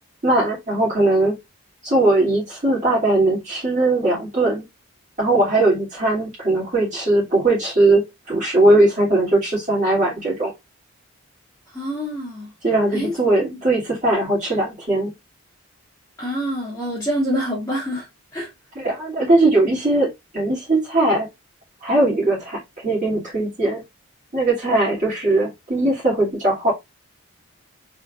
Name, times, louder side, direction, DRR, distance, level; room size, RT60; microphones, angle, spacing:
voice 1, 0.2-1.4 1.8-4.6 5.2-10.5 12.6-15.1 18.7-21.3 21.8-23.8 24.3-26.7, right 2 dB, 35° right, 2.6 m, -19 dB
voice 2, 11.7-12.5 12.9-13.1 16.2-18.1 18.3-18.5, equal, 10° left, 1.5 m, -26 dB
4.2 x 3.5 x 2.5 m
head